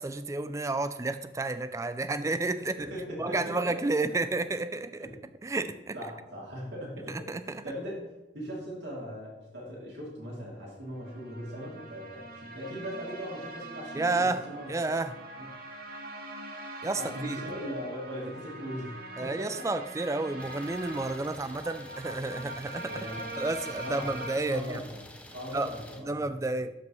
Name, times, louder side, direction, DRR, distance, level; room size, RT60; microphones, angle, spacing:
voice 1, 0.0-2.9 3.2-5.1 5.4-6.0 7.3-7.6 13.9-14.4 14.7-15.1 16.8-17.4 19.2-23.1 23.4-24.8 25.5-25.7 26.0-26.7, right 2 dB, 15° right, 12 dB, 0.3 m, -31 dB
voice 2, 2.8-3.7 5.0-5.1 5.9-7.2 7.4-8.1 8.3-14.9 15.4-15.5 16.9-19.7 22.9-23.3 23.8-24.1 24.5-25.0 25.3-26.3, equal, 75° right, -4 dB, 2.8 m, -39 dB
sound 1, 11.0-24.4, right 1 dB, 55° right, 0.9 m, -43 dB
Idling, 20.4-26.0, left 1 dB, 5° left, 0.7 m, -49 dB
12.0 x 5.2 x 3.1 m, 1.0 s
head